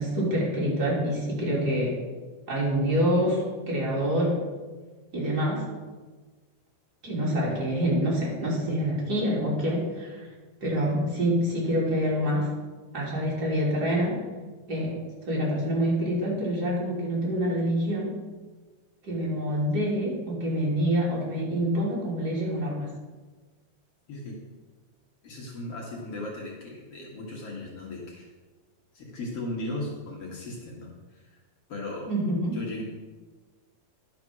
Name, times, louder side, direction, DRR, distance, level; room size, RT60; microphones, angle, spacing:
voice 1, 0.0-2.0 2.5-4.4 5.1-5.6 7.0-10.3 10.6-12.5 12.9-14.2 14.7-15.0 15.3-18.1 19.0-22.9 32.1-32.6, equal, 30° right, -5 dB, 3.1 m, -26 dB
voice 2, 25.2-28.3 28.9-31.3 31.7-32.1 32.5-32.8, left 2 dB, 55° left, -3 dB, 2.3 m, -37 dB
11.5 x 5.1 x 6.0 m, 1.3 s
omnidirectional pair, 3.4 m